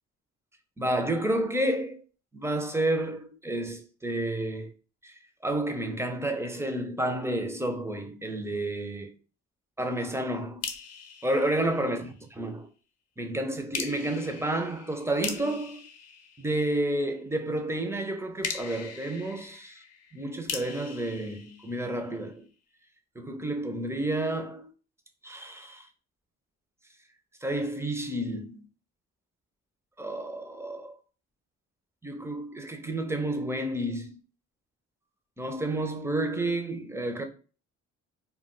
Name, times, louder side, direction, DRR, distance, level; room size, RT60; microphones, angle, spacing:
voice 1, 0.8-2.0 2.3-4.7 5.0-9.1 9.8-10.6 11.2-12.7 13.2-15.8 16.4-19.8 20.1-22.5 23.2-24.7 25.2-25.9 27.4-28.6 30.0-30.9 32.0-34.2 35.4-37.2, right 1 dB, 10° right, 0.4 m, -30 dB
sound 1, 10.6-12.3 13.7-17.1 18.4-22.3, left 6 dB, 55° left, 0.6 m, -40 dB
2.2 x 2.1 x 3.6 m
cardioid pair, 90°, 30 cm